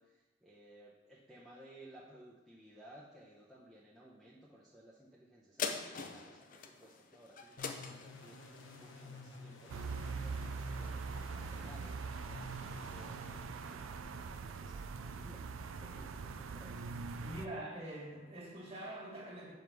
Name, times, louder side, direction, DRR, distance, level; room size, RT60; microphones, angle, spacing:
voice 1, 0.0-15.5 15.8-16.9, right 1 dB, ahead, -8 dB, 0.8 m, -59 dB
sound 1, 5.6-10.4 10.8-10.9, left 5 dB, 40° left, 0.5 m, -44 dB
sound 2, 7.6-14.1, left 3 dB, 70° left, 0.9 m, -52 dB
sound 3, 9.7-17.5, right 4 dB, 80° right, 0.4 m, -42 dB
voice 2, 17.2-19.5, right 1 dB, 30° right, -4 dB, 1.9 m, -44 dB
5.3 x 4.8 x 6.1 m, 1.2 s
head